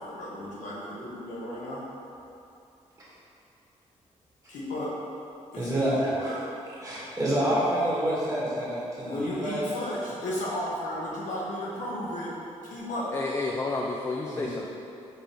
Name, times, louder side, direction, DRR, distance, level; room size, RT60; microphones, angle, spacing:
voice 1, 0.0-1.8 4.5-4.9 5.5-6.3 9.0-12.3 12.7-13.1, left 1 dB, 80° left, -6 dB, 1.1 m, -34 dB
voice 2, 5.6-6.3 6.8-9.7 14.3-14.5, right 1 dB, 25° right, -7 dB, 1.5 m, -28 dB
voice 3, 13.1-14.7, left 3 dB, 25° left, -1 dB, 0.4 m, -30 dB
5.1 x 3.3 x 3.0 m, 2.7 s
cardioid pair, 65°, 13 cm